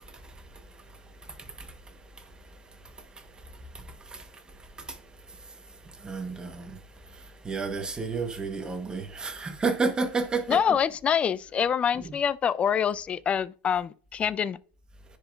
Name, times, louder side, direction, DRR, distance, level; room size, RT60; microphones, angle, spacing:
voice 1, 6.0-6.5 7.5-10.6, right 4 dB, 15° right, 1.2 m, -29 dB
voice 2, 10.5-14.6, left 8 dB, 25° left, 0.4 m, -26 dB
9.9 x 5.0 x 2.5 m
supercardioid pair, 120°, 5 cm